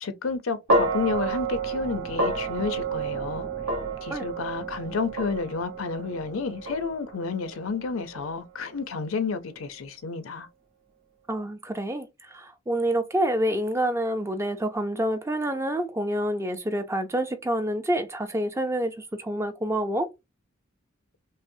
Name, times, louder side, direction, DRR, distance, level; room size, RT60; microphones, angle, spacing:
voice 1, 0.0-3.5 4.0-10.5, left 4 dB, 75° left, 0.6 m, -31 dB
sound 1, 0.7-9.0, right 3 dB, 75° right, 1.2 m, -30 dB
voice 2, 11.3-20.1, right 1 dB, 15° right, 0.4 m, -27 dB
5.4 x 2.0 x 2.6 m
head